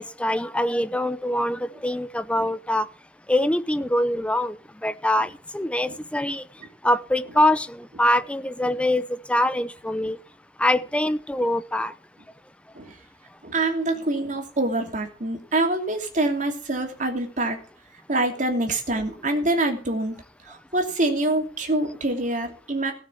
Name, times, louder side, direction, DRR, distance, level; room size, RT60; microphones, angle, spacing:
voice 1, 0.0-2.9 3.3-4.6 4.8-6.4 6.8-10.2 10.6-11.9, left 1 dB, 5° left, 0.6 m, -24 dB
voice 2, 13.4-17.6 18.1-20.2 20.5-22.9, right 2 dB, 45° right, 2.8 m, -25 dB
17.0 x 6.5 x 7.0 m
head